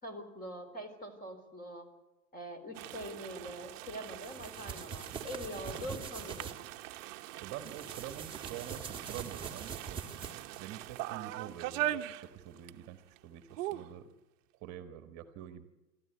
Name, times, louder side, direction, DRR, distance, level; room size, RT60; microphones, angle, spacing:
voice 1, 0.0-1.9 2.3-6.5, equal, 20° left, 9 dB, 4.0 m, -44 dB
sound 1, 2.7-12.9 13.1-13.2 13.5-13.9, right 14 dB, 50° right, 1.0 m, -41 dB
sound 2, 4.0-6.6 7.5-10.7, right 6 dB, 10° right, 1.7 m, -44 dB
voice 2, 7.4-14.1 14.6-15.7, right 11 dB, 35° right, 9 dB, 1.5 m, -46 dB
26.0 x 14.0 x 9.4 m, 1.1 s
hypercardioid pair, 120°, 49 cm